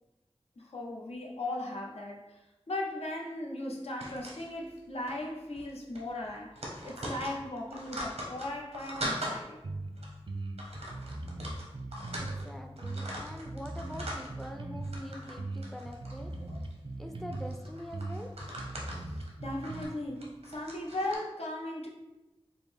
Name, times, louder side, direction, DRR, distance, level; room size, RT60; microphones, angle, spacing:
voice 1, 0.6-6.6 6.8-9.7 18.9-21.9, left 1 dB, 80° left, -1 dB, 0.7 m, -38 dB
sound 1, 4.0-4.8 5.1-5.2 5.5-5.7 6.0-9.4 10.0-10.1 10.6-12.5 12.8-14.5 14.8-15.4 15.6-16.7 17.3-21.2, equal, 85° right, 0.9 m, -41 dB
sound 2, 9.6-9.9 10.3-12.5 12.8-15.0 15.4-17.6 17.9-19.8, right 2 dB, 55° right, 0.5 m, -39 dB
voice 2, 12.2-16.3 17.0-18.3, equal, ahead, 5 dB, 0.4 m, -44 dB
5.1 x 2.1 x 3.4 m, 1.0 s
wide cardioid pair, 70°, 10 cm